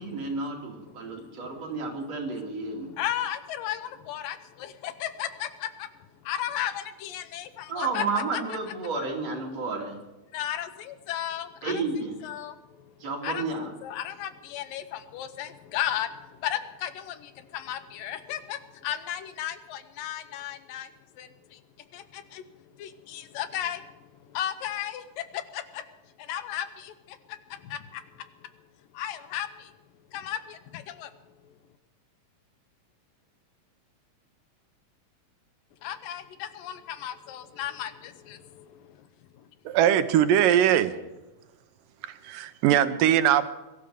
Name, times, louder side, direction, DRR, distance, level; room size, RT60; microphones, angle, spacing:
voice 1, 0.0-2.9 7.7-10.0 11.6-12.2 13.0-13.7, right 3 dB, 50° right, -1 dB, 4.0 m, -31 dB
voice 2, 1.0-1.6 2.8-5.9 6.3-8.1 10.3-11.7 12.2-12.6 13.2-13.5 13.8-20.9 21.2-21.6 21.9-22.4 22.8-23.9 24.3-25.8 26.2-27.2 27.5-28.0 28.9-29.7 30.1-31.1 35.8-39.0, left 11 dB, 90° left, 11 dB, 2.7 m, -35 dB
voice 3, 39.7-41.0 42.0-43.5, right 10 dB, 80° right, 11 dB, 2.4 m, -21 dB
22.0 x 12.5 x 5.1 m, 1.1 s
omnidirectional pair, 3.8 m